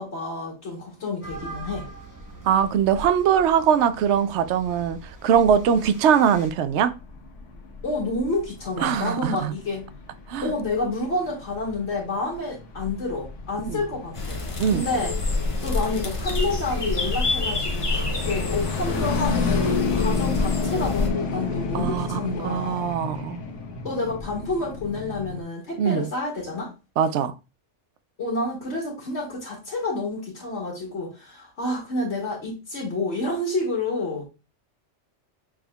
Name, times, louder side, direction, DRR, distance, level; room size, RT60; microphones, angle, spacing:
voice 1, 0.0-1.9 7.8-9.9 10.4-14.4 14.7-15.1 15.6-23.0 23.8-26.7 28.2-34.3, left 2 dB, 65° left, 2.0 m, -29 dB
sound 1, 1.2-6.5, right 2 dB, 15° right, 0.9 m, -41 dB
voice 2, 2.4-6.9 8.8-9.5 10.3-10.5 13.7-13.8 14.6-14.8 21.7-23.4 25.8-26.1 27.0-27.3, right 8 dB, 75° right, 0.8 m, -22 dB
Dodge Road Runner doppler, 6.5-25.4, left 5 dB, 80° left, 1.3 m, -32 dB
sound 2, 14.1-21.1, left 2 dB, 30° left, 0.7 m, -27 dB
6.1 x 3.6 x 2.3 m
omnidirectional pair, 1.2 m